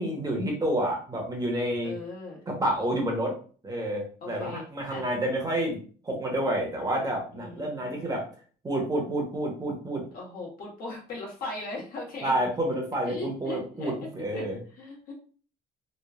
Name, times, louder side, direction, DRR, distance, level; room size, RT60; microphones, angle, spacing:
voice 1, 0.0-1.9 2.5-3.3 3.6-8.3 8.6-10.0 12.2-14.6, right 1 dB, 20° right, 0 dB, 0.9 m, -29 dB
voice 2, 1.8-2.4 4.2-5.1 7.3-8.1 10.1-12.3 13.1-13.9 14.3-14.4 14.7-15.1, left 3 dB, 60° left, -2 dB, 1.2 m, -39 dB
3.1 x 2.2 x 2.3 m, 0.41 s
cardioid pair, 110°, 17 cm